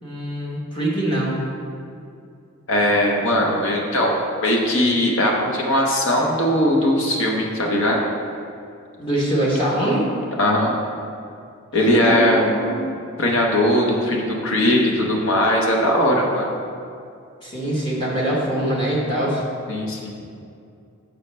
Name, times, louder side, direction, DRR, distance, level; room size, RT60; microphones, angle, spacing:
voice 1, 0.0-1.4 9.0-10.1 11.8-12.9 17.4-19.4, right 1 dB, 20° left, -5 dB, 1.1 m, -23 dB
voice 2, 2.7-8.0 10.4-10.8 11.7-12.5 13.2-16.5 19.7-20.2, left 1 dB, 60° left, -1 dB, 0.8 m, -19 dB
6.3 x 5.4 x 3.3 m, 2.5 s
head